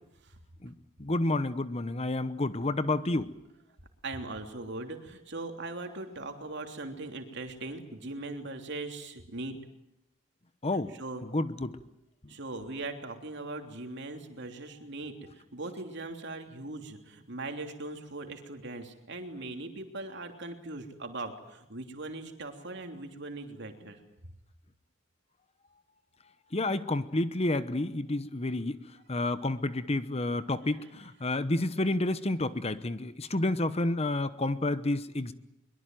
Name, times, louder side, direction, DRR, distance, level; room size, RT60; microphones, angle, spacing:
voice 1, 1.0-3.3 10.6-10.9 11.2-11.8 26.5-28.8 29.1-35.3, left 2 dB, 30° left, 13 dB, 1.0 m, -30 dB
voice 2, 4.0-9.5 11.0-11.2 12.3-24.0, right 2 dB, 55° right, 5 dB, 3.2 m, -40 dB
23.0 x 22.5 x 9.2 m, 0.85 s
head